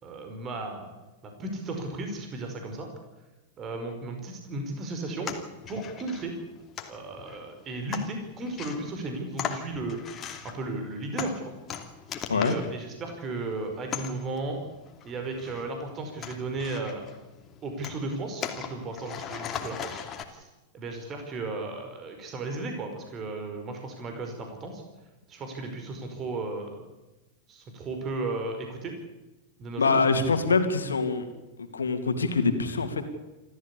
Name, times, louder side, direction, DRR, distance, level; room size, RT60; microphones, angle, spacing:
voice 1, 0.0-0.9 1.2-2.9 3.6-5.3 5.7-6.3 6.9-10.0 10.4-11.5 12.3-14.6 15.0-17.0 17.6-20.0 20.3-20.5 20.7-24.8 25.3-26.8 27.5-29.0 29.6-29.9, right 2 dB, 30° right, 5 dB, 5.1 m, -35 dB
sound 1, 5.2-20.2, left 8 dB, 30° left, 2.8 m, -40 dB
voice 2, 29.8-31.3 31.7-33.1, left 4 dB, 80° left, 7 dB, 2.7 m, -24 dB
27.0 x 14.0 x 8.6 m, 1.1 s
figure-of-eight pair, 90°, 0 cm